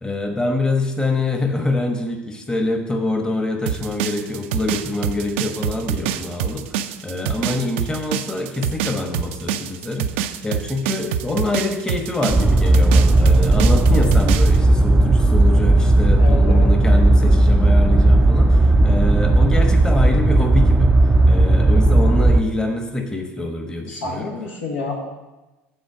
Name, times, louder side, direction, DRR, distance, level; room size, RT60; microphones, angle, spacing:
voice 1, 0.0-20.9 21.3-24.3, left 2 dB, 10° left, 3 dB, 1.1 m, -25 dB
sound 1, 3.7-14.6, right 9 dB, 75° right, 0.4 m, -25 dB
sound 2, 12.3-22.4, right 2 dB, 15° right, 0.5 m, -14 dB
voice 2, 16.2-16.7 23.9-25.0, left 3 dB, 80° left, -1 dB, 1.8 m, -28 dB
8.0 x 4.2 x 6.2 m, 1.1 s
hypercardioid pair, 80°, 7 cm